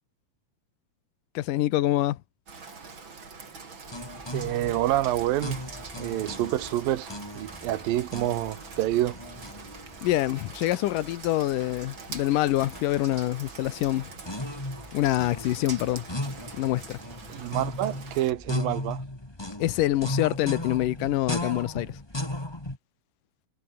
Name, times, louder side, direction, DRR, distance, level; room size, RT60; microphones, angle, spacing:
voice 1, 1.3-2.2 10.0-14.1 14.9-16.1 16.5-17.0 19.6-22.0, left 15 dB, 75° left, 2.5 m, -26 dB
Rain, 2.5-18.3, right 4 dB, 35° right, 3.9 m, -44 dB
sound 1, 3.9-22.8, left 1 dB, 10° left, 2.5 m, -37 dB
voice 2, 4.3-5.6 5.9-7.1 7.3-9.2 17.3-19.0, right 14 dB, 80° right, 2.9 m, -27 dB
omnidirectional pair, 4.0 m